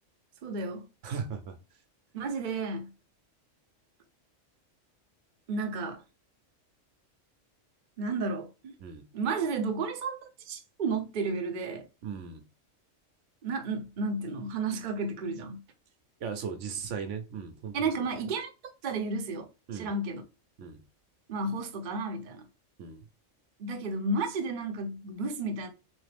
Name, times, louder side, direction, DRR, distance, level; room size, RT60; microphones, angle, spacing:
voice 1, 0.4-0.9 2.1-2.9 5.5-6.0 8.0-8.7 9.1-11.9 13.4-15.6 17.7-18.5 18.8-20.2 21.3-22.5 23.6-25.7, right 3 dB, 45° right, 0.8 m, -32 dB
voice 2, 1.0-1.6 8.8-9.0 12.0-12.4 16.2-17.7 19.7-19.9 20.6-20.8 22.8-23.0, right 6 dB, 75° right, 1.0 m, -37 dB
4.0 x 3.1 x 3.3 m
omnidirectional pair, 1.3 m